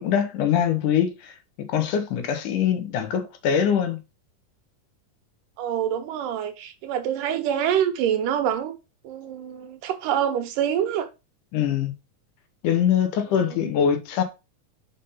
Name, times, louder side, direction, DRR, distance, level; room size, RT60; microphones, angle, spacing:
voice 1, 0.0-1.3 1.6-4.0 11.5-11.9 12.6-14.2, left 8 dB, 75° left, 2.6 m, -23 dB
voice 2, 5.6-8.8 9.0-11.1 13.3-13.7, right 9 dB, 85° right, 2.7 m, -26 dB
5.7 x 5.1 x 5.5 m
omnidirectional pair, 3.7 m